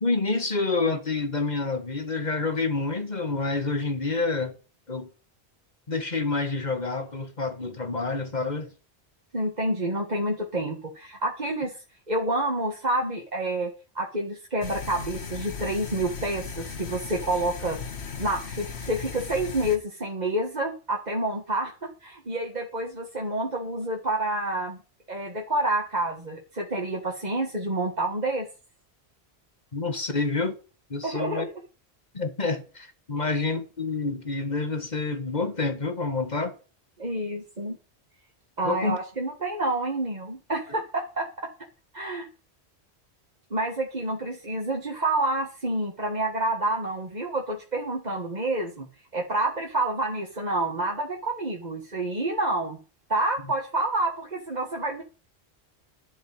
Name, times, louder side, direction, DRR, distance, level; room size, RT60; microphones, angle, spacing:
voice 1, 0.0-4.5 4.9-5.1 5.9-8.7 29.7-30.6 30.9-31.5 32.1-36.5 38.6-39.0, left 3 dB, 40° left, 1.7 m, -28 dB
voice 2, 9.3-11.8 12.1-17.8 18.2-24.8 25.1-28.5 31.0-31.5 33.2-33.3 37.0-37.8 38.6-41.3 41.9-42.3 43.5-48.9 49.1-52.8 53.1-55.0, right 1 dB, 40° right, 1.8 m, -28 dB
sound 1, 14.6-19.8, left 6 dB, 90° left, 1.7 m, -37 dB
12.0 x 5.1 x 8.7 m
omnidirectional pair, 1.1 m